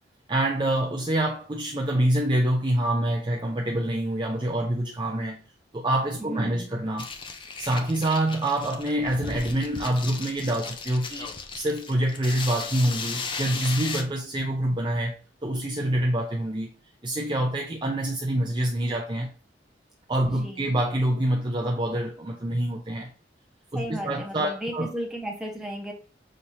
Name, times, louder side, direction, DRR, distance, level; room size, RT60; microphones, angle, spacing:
voice 1, 0.3-5.4 5.7-7.1 7.6-15.1 15.4-16.7 17.0-19.3 20.1-23.1 23.7-24.9, right 1 dB, 25° right, 0.5 m, -26 dB
voice 2, 6.2-6.8 20.3-20.8 23.7-25.9, right 1 dB, 5° right, 1.1 m, -35 dB
sound 1, 7.0-14.0, left 4 dB, 25° left, 0.5 m, -36 dB
6.3 x 2.8 x 2.8 m
head